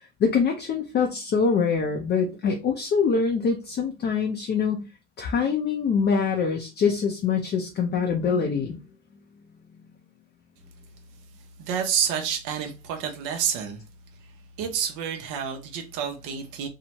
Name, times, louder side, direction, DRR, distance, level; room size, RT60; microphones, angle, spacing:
voice 1, 0.2-4.9 5.2-8.8, left 5 dB, 30° left, 0.5 m, -24 dB
voice 2, 11.6-13.8 14.6-16.7, right 8 dB, 60° right, 0.7 m, -29 dB
2.8 x 2.1 x 2.8 m
supercardioid pair, 105°, 34 cm